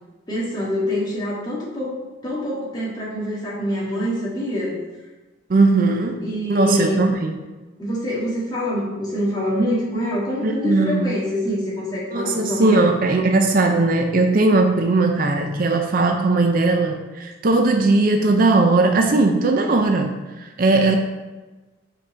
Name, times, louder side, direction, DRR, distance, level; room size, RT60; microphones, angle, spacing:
voice 1, 0.3-1.9 2.2-4.8 6.2-7.1 7.8-12.9, equal, 20° left, -7 dB, 1.8 m, -25 dB
voice 2, 5.5-6.2 6.5-7.3 10.4-11.1 12.1-21.0, right 3 dB, 45° right, 4 dB, 0.5 m, -18 dB
5.5 x 4.1 x 5.0 m, 1.2 s
head